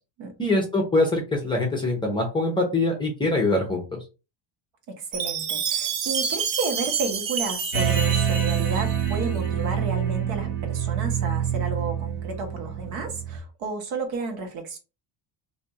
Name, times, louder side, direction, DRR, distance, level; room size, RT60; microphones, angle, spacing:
voice 1, 0.4-4.0, left 2 dB, 10° left, 0.6 m, -23 dB
voice 2, 4.9-14.8, right 3 dB, 80° right, 1.2 m, -32 dB
Chime, 5.1-9.3, right 7 dB, 45° right, 0.5 m, -28 dB
sound 1, 7.7-13.4, right 8 dB, 25° right, 0.8 m, -26 dB
2.7 x 2.3 x 4.0 m
cardioid pair, 175°, 47 cm